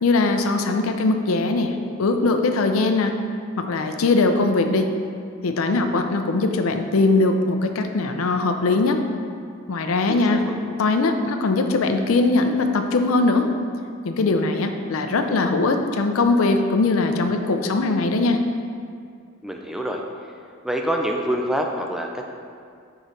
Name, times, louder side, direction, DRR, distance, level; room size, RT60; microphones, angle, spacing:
voice 1, 0.0-3.2 3.6-4.9 5.4-9.0 9.7-10.4 10.8-13.5 14.0-18.4, left 3 dB, 70° left, 6 dB, 0.5 m, -21 dB
voice 2, 10.1-10.6 19.4-20.0 20.6-22.2, equal, ahead, 1 dB, 0.4 m, -26 dB
6.3 x 4.9 x 3.9 m, 2.3 s
head